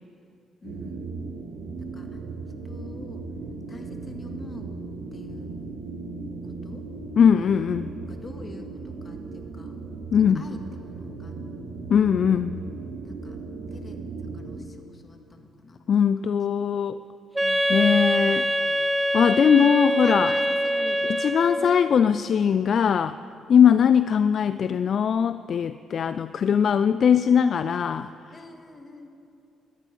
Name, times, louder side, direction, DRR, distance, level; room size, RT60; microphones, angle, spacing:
voice 1, 0.6-1.1 1.8-2.2 2.6-3.3 3.7-4.8 5.1-5.5 6.4-6.8 8.1-9.8 10.2-11.4 12.3-12.5 13.0-13.4 13.7-14.0 14.3-16.1 16.5-16.7 17.4-18.8 19.6-21.1 21.6-21.7 24.5-24.8 27.7-27.8 28.3-29.1, left 3 dB, 35° left, 4 dB, 2.1 m, -44 dB
sound 1, 0.6-14.6, right 4 dB, 80° right, 1.7 m, -37 dB
voice 2, 7.2-7.9 10.1-10.4 11.9-12.6 15.9-17.0 17.7-18.5 19.1-20.3 21.0-23.2 23.5-28.1, left 7 dB, 60° left, 13 dB, 0.4 m, -20 dB
Wind instrument woodwind instrument, 17.3-21.8, equal, 10° right, 0.7 m, -24 dB
20.0 x 13.5 x 5.4 m, 2.7 s
supercardioid pair, 65°, 0 cm